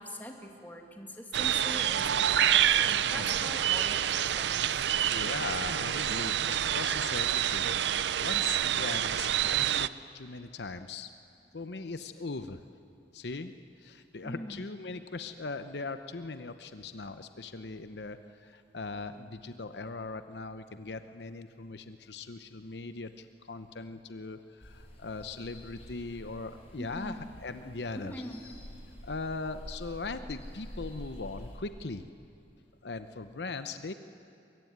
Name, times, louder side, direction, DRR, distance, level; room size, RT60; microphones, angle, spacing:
voice 1, 0.0-4.9 14.2-14.6 26.8-27.3 28.0-28.4, left 1 dB, 10° left, 2 dB, 2.3 m, -43 dB
sound 1, 1.3-9.9, right 10 dB, 75° right, 0.5 m, -27 dB
voice 2, 3.0-3.4 5.1-7.7 8.2-9.9 10.1-11.1 11.5-12.6 13.1-13.5 13.8-28.1 29.0-32.0 32.8-33.9, left 3 dB, 70° left, 10 dB, 0.8 m, -40 dB
sound 2, 24.6-31.6, equal, 35° left, 5.8 m, -47 dB
23.0 x 22.5 x 9.4 m, 2.7 s
head